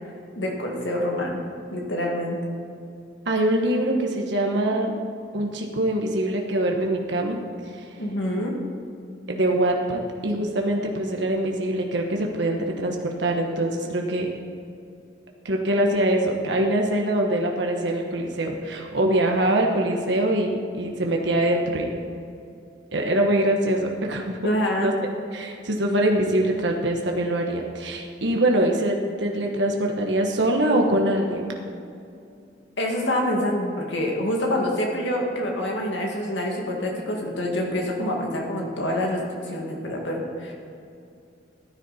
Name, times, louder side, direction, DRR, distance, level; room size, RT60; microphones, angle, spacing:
voice 1, 0.3-1.4 1.7-2.4 8.0-8.6 24.4-24.9 32.8-40.5, left 1 dB, 85° left, -1 dB, 2.3 m, -26 dB
voice 2, 3.2-4.9 5.3-7.4 7.7-7.9 9.3-14.3 15.4-21.9 22.9-24.4 24.8-24.9 25.3-31.5, right 1 dB, 80° right, 1 dB, 1.2 m, -23 dB
14.5 x 9.7 x 4.3 m, 2.5 s
head